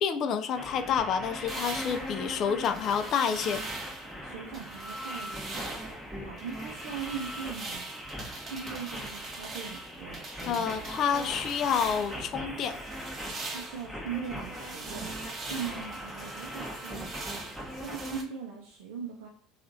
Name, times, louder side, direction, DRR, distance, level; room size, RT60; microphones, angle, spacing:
voice 1, 0.0-3.7 10.5-12.8, left 7 dB, 55° left, 10 dB, 0.3 m, -29 dB
sound 1, 0.6-18.2, equal, 5° right, 0.8 m, -40 dB
sound 2, 1.5-4.1 4.5-6.0 6.4-12.3 12.6-18.2, right 3 dB, 40° right, 0.8 m, -42 dB
voice 2, 4.2-7.8 8.4-10.7 13.5-17.2 17.5-19.3, right 7 dB, 80° right, -2 dB, 0.4 m, -40 dB
3.0 x 2.4 x 2.5 m, 0.69 s
hypercardioid pair, 80°, 0 cm